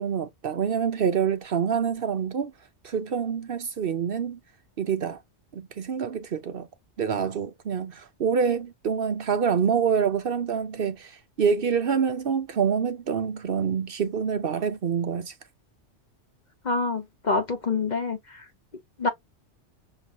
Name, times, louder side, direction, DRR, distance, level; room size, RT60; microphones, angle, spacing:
voice 1, 0.0-2.5 2.8-4.4 4.8-5.2 5.5-6.7 7.0-15.3, right 7 dB, 55° right, 0.8 m, -26 dB
voice 2, 16.6-18.4 19.0-19.1, left 3 dB, 45° left, 0.8 m, -26 dB
6.9 x 2.4 x 2.9 m
omnidirectional pair, 1.2 m